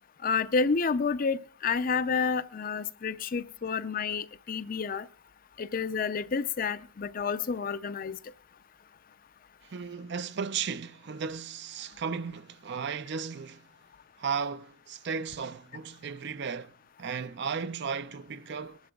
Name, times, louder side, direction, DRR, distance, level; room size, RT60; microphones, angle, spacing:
voice 1, 0.2-5.1 5.6-8.2, left 5 dB, 45° left, 0.5 m, -29 dB
voice 2, 9.7-13.6 14.2-16.7 17.0-18.8, right 6 dB, 55° right, 0.4 m, -35 dB
21.5 x 11.5 x 2.3 m
head